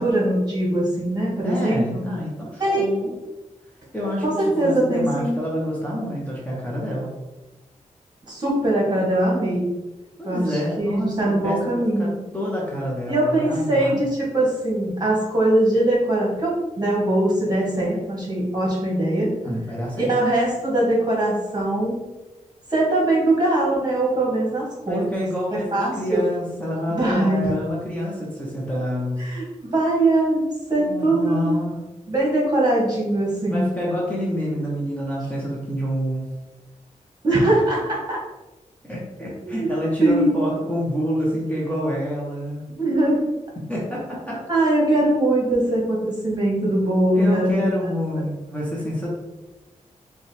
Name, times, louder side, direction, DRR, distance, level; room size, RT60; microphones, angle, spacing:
voice 1, 0.0-2.0 2.6-2.9 4.2-5.4 8.3-9.7 10.2-12.2 13.1-19.3 20.0-22.0 22.7-26.2 26.9-27.5 29.2-30.4 30.7-31.4 32.1-33.7 37.2-38.2 39.4-39.7 40.0-40.3 42.8-43.2 44.5-47.5 47.8-47.9, right 1 dB, 30° right, -4 dB, 1.5 m, -21 dB
voice 2, 1.4-3.2 3.9-7.1 10.2-13.9 19.4-20.1 24.9-29.3 30.8-31.8 33.5-36.2 38.9-42.7 43.6-44.4 47.1-49.1, equal, 10° left, -5 dB, 0.8 m, -27 dB
5.3 x 2.3 x 3.3 m, 1.1 s
wide cardioid pair, 145°, 13 cm